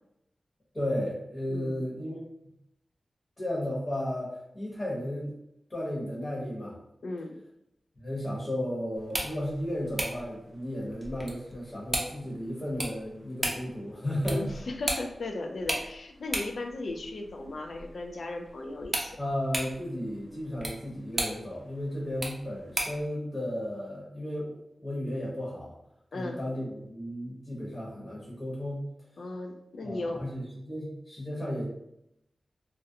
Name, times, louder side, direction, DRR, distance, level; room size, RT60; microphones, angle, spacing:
voice 1, 0.7-2.2 3.4-4.3 4.5-5.3 5.7-6.7 8.0-14.5 19.2-25.7 26.1-28.8 29.8-31.7, equal, 40° left, -7 dB, 0.9 m, -34 dB
voice 2, 1.5-1.8 7.0-7.4 14.2-19.2 26.1-26.4 29.2-30.2, left 2 dB, 75° left, 4 dB, 0.3 m, -36 dB
sound 1, 9.0-23.1, right 1 dB, 25° right, 0.6 m, -37 dB
2.4 x 2.0 x 2.7 m, 0.81 s
wide cardioid pair, 65°, 0 cm